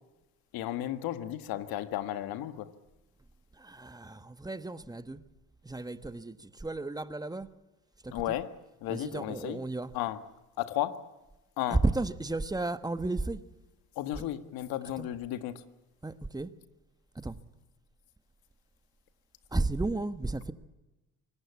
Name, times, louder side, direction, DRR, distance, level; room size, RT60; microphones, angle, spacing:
voice 1, 0.5-2.7 8.1-8.5 8.8-9.6 9.9-10.2 10.6-11.0 11.6-11.8 13.9-15.6, left 13 dB, 75° left, 1.7 m, -34 dB
voice 2, 3.5-5.2 5.6-7.5 8.0-8.3 8.9-9.9 11.7-13.4 14.1-14.2 15.0-15.1 16.0-16.5 17.1-17.4 19.5-20.5, right 2 dB, 10° right, 1.3 m, -33 dB
25.0 x 19.0 x 8.4 m
supercardioid pair, 85°, 36 cm